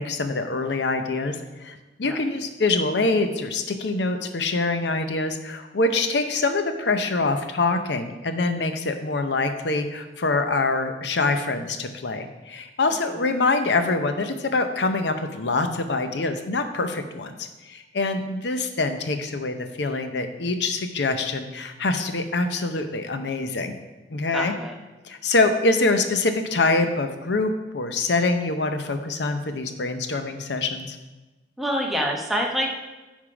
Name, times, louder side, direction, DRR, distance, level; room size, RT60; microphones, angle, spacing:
voice 1, 0.0-23.8 24.1-24.5 25.0-31.0, left 3 dB, 70° left, 7 dB, 0.7 m, -25 dB
voice 2, 24.3-24.7 31.6-32.7, equal, ahead, -1 dB, 0.9 m, -26 dB
9.5 x 3.7 x 4.9 m, 1.1 s
head